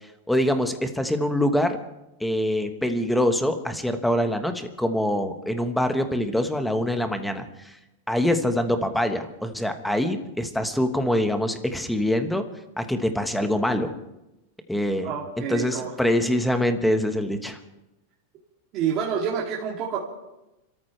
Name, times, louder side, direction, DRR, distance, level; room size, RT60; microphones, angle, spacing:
voice 1, 0.3-1.8 2.2-7.8 8.1-12.4 12.8-13.9 14.7-15.1 15.5-17.6, left 1 dB, ahead, 7 dB, 1.3 m, -24 dB
voice 2, 15.0-15.9 18.7-20.0, right 7 dB, 35° right, -5 dB, 2.7 m, -28 dB
30.0 x 14.0 x 3.4 m, 0.94 s
supercardioid pair, 150°, 0 cm